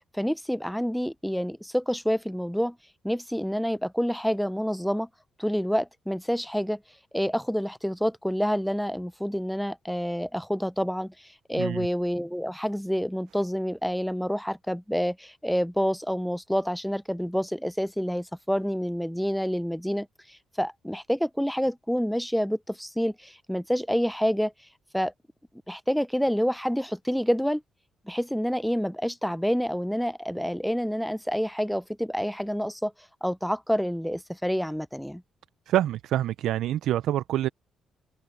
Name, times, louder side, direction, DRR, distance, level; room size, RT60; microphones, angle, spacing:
voice 1, 0.1-2.8 3.0-5.1 5.4-6.8 7.1-24.5 24.9-25.1 25.7-27.6 28.1-32.9 33.2-35.2, equal, ahead, 0.4 m, -28 dB
voice 2, 35.7-37.5, right 12 dB, 80° right, 0.4 m, -26 dB
open air
cardioid pair, 90°, 0 cm